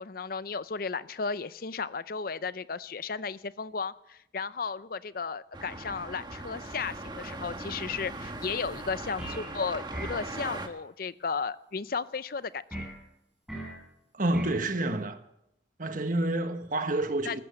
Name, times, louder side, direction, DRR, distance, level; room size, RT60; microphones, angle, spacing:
voice 1, 0.0-12.8 17.2-17.4, left 5 dB, 50° left, 0.6 m, -34 dB
sound 1, 5.5-10.7, right 2 dB, 25° right, 1.3 m, -39 dB
sound 2, 9.2-9.5 9.9-10.3 12.7-13.0 13.5-13.8 14.3-14.6, right 1 dB, 5° right, 4.5 m, -38 dB
voice 2, 14.1-15.2 15.8-17.4, right 2 dB, 45° right, 1.3 m, -28 dB
15.0 x 13.0 x 7.0 m
head